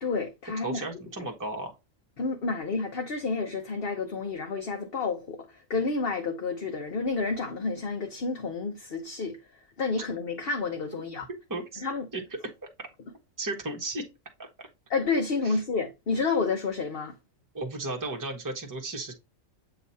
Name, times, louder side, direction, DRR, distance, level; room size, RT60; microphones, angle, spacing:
voice 1, 0.0-0.8 2.2-9.4 9.8-11.3 11.8-12.1 14.9-17.1, left 4 dB, 50° left, 1.2 m, -30 dB
voice 2, 0.6-1.7 11.5-11.8 12.1-12.9 13.4-14.1 14.4-14.5 15.4-15.6 17.5-19.1, right 2 dB, 15° right, 1.3 m, -35 dB
7.9 x 3.1 x 4.1 m
omnidirectional pair, 1.4 m